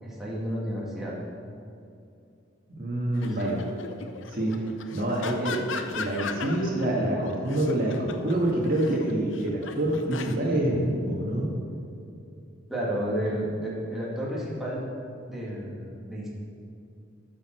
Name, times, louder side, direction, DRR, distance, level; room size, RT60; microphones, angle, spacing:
voice 1, 0.0-1.1 3.4-3.6 12.7-14.8 15.3-16.3, equal, ahead, -7 dB, 1.9 m, -31 dB
voice 2, 2.7-3.6 4.3-4.5 4.9-5.6 5.9-11.5, right 1 dB, 45° right, -3 dB, 1.8 m, -26 dB
sound 1, 3.1-6.9 7.3-10.3, left 4 dB, 75° left, 0.6 m, -37 dB
13.0 x 6.5 x 4.5 m, 2.6 s
head